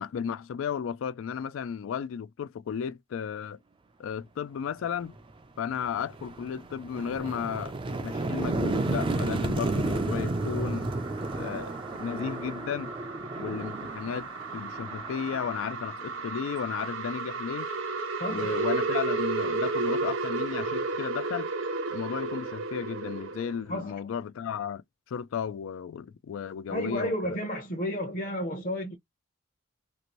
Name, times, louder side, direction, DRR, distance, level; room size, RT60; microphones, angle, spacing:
voice 1, 0.0-3.6 4.0-5.1 5.6-10.9 11.3-12.9 13.4-17.7 18.3-21.5 21.9-24.8 25.1-27.4, left 7 dB, 65° left, 0.3 m, -34 dB
sound 1, 5.2-5.3 5.7-16.5, right 2 dB, 25° right, 0.4 m, -32 dB
sound 2, 8.5-23.6, right 3 dB, 65° right, 0.7 m, -34 dB
voice 2, 18.1-18.6 23.7-23.9 26.7-29.0, equal, 40° left, 0.8 m, -32 dB
2.8 x 2.5 x 3.0 m
head